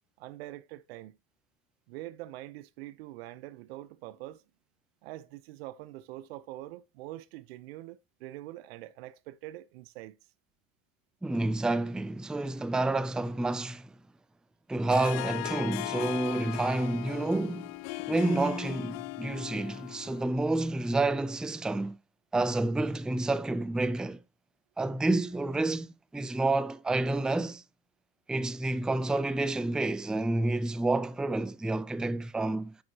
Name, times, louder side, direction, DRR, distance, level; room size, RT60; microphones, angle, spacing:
voice 1, 0.2-1.2 1.9-4.4 5.0-10.2, right 16 dB, 85° right, 0.7 m, -44 dB
voice 2, 11.2-13.9 14.7-17.7 18.1-22.0 22.3-24.2 24.8-25.9 26.1-27.6 28.3-32.8, right 2 dB, 5° right, 0.4 m, -29 dB
Harp, 14.9-20.4, left 22 dB, 60° left, 0.5 m, -38 dB
9.3 x 6.3 x 2.9 m
supercardioid pair, 95°, 30 cm